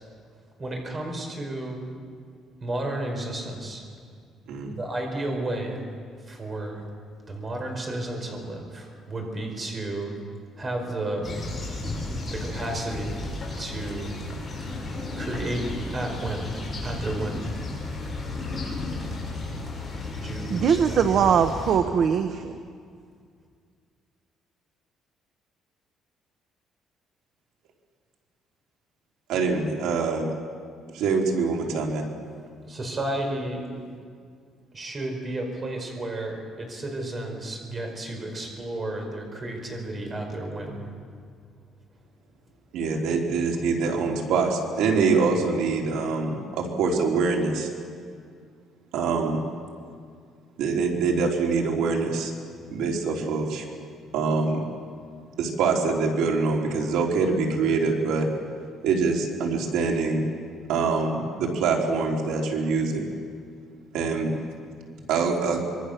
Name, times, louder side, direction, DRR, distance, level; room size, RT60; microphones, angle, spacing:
voice 1, 0.6-1.8 2.6-3.8 4.7-5.8 6.3-6.8 7.3-10.1 10.6-11.3 12.3-13.2 13.6-14.2 15.2-15.7 15.9-17.5 20.2-21.0 32.6-33.7 34.7-40.9, right 1 dB, 25° right, 2 dB, 4.8 m, -32 dB
sound 1, 11.2-21.8, left 2 dB, 15° left, 7.1 m, -33 dB
voice 2, 20.5-22.5, right 7 dB, 50° right, 8 dB, 1.0 m, -21 dB
voice 3, 29.3-30.3 30.9-32.0 42.7-47.7 48.9-49.4 50.6-52.3 52.7-53.6 54.1-54.6 55.4-58.3 58.8-60.3 60.7-63.0 63.9-64.3 65.1-65.6, right 4 dB, 90° right, 0 dB, 3.6 m, -24 dB
25.5 x 23.0 x 6.7 m, 2.1 s
cardioid pair, 150°, 0 cm